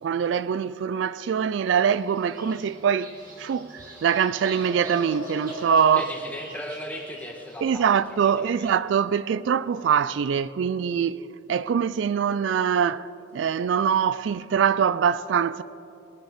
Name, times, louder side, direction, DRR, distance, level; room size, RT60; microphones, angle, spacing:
voice 1, 0.0-6.1 7.6-11.2 11.5-13.1 13.3-15.6, right 7 dB, 75° right, 0.3 m, -23 dB
Bird vocalization bird call bird song, 1.5-8.1, equal, 50° right, 2.9 m, -42 dB
voice 2, 5.9-8.0 8.3-8.7, left 1 dB, 10° left, 1.5 m, -37 dB
21.0 x 10.0 x 5.0 m
head